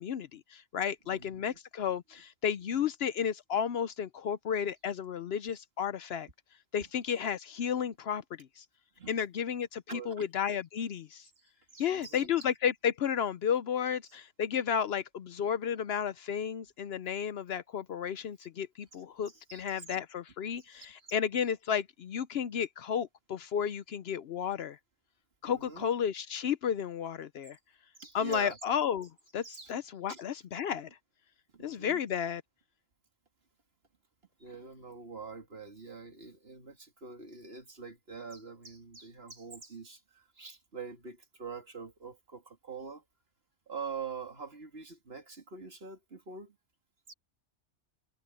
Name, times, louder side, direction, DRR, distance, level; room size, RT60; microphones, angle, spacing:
voice 1, 0.0-6.3 6.7-8.6 9.1-11.3 11.8-24.8 25.4-27.6 28.1-30.9 31.6-32.4, left 8 dB, 65° left, 0.8 m, -33 dB
voice 2, 1.1-1.6 2.7-2.9 9.0-9.2 9.9-10.2 11.7-12.3 19.3-20.0 20.7-21.1 25.4-25.9 28.0-28.6 29.4-29.7 30.1-30.2 31.5-32.0 34.4-43.0 43.7-46.6 47.1-47.2, right 5 dB, 55° right, 2.8 m, -45 dB
omnidirectional pair, 1.2 m